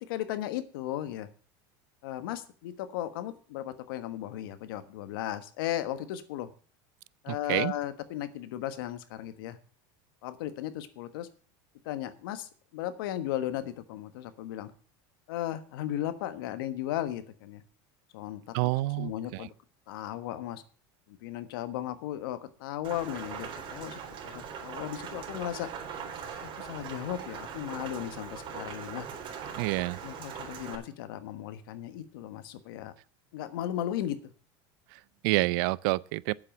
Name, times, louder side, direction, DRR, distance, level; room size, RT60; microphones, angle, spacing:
voice 1, 0.0-1.3 2.0-6.5 7.2-9.6 10.2-11.3 11.8-14.7 15.3-17.6 18.1-18.7 19.0-19.5 19.9-20.6 21.1-25.7 26.4-29.1 30.0-32.9 33.3-34.2, left 12 dB, 80° left, 1.3 m, -36 dB
voice 2, 7.3-7.7 18.5-19.5 29.6-30.0 34.9-36.3, right 21 dB, 70° right, 0.5 m, -29 dB
Rain, 22.8-30.8, right 7 dB, 45° right, 3.6 m, -41 dB
8.6 x 7.6 x 7.5 m
supercardioid pair, 115°, 12 cm